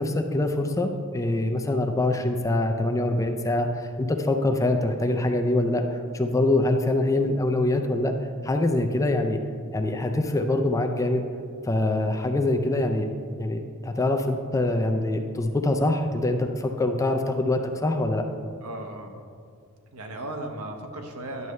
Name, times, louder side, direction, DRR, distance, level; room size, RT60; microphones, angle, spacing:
voice 1, 0.0-8.1 8.4-9.4 9.7-11.2 11.6-13.1 13.4-18.2, left 2 dB, 15° left, 5 dB, 0.4 m, -24 dB
voice 2, 18.6-19.2 19.9-21.5, right 1 dB, 85° right, 3 dB, 0.9 m, -36 dB
10.5 x 6.7 x 3.2 m, 2.2 s
head